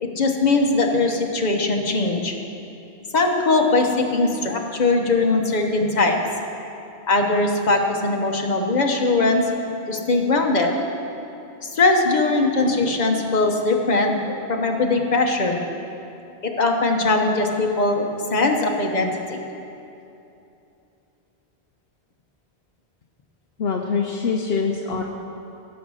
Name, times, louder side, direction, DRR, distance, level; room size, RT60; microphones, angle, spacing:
voice 1, 0.0-2.4 3.1-6.2 7.1-9.4 9.9-10.7 11.6-15.6 16.4-19.4 24.5-24.6, left 3 dB, 45° left, 2 dB, 1.2 m, -20 dB
voice 2, 23.6-25.0, left 5 dB, 70° left, 2 dB, 0.9 m, -24 dB
15.0 x 7.3 x 6.3 m, 2.8 s
omnidirectional pair, 1.1 m